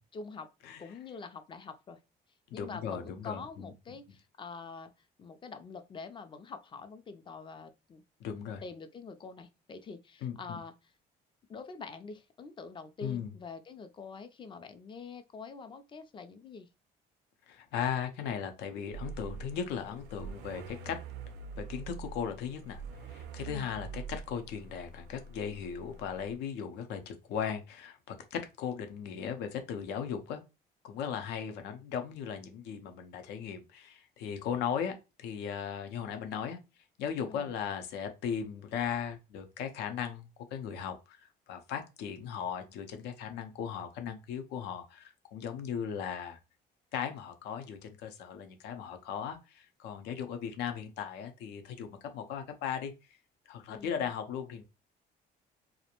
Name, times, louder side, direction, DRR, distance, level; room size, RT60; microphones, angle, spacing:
voice 1, 0.1-0.5 0.8-2.0 2.5-4.9 5.2-8.0 8.6-10.7 11.5-16.7 23.5-23.8 37.3-37.5 53.7-54.1, left 4 dB, 30° left, 0.4 m, -45 dB
voice 2, 2.5-3.7 8.2-8.6 10.2-10.6 13.0-13.3 17.5-21.0 21.6-22.8 23.1-30.4 30.8-36.6 37.0-46.4 46.9-51.9 52.1-52.9 53.5-54.6, left 7 dB, 85° left, 0.6 m, -37 dB
sound 1, 18.9-26.4, right 5 dB, 80° right, 0.5 m, -45 dB
2.5 x 2.1 x 2.8 m
cardioid pair, 110°, 17 cm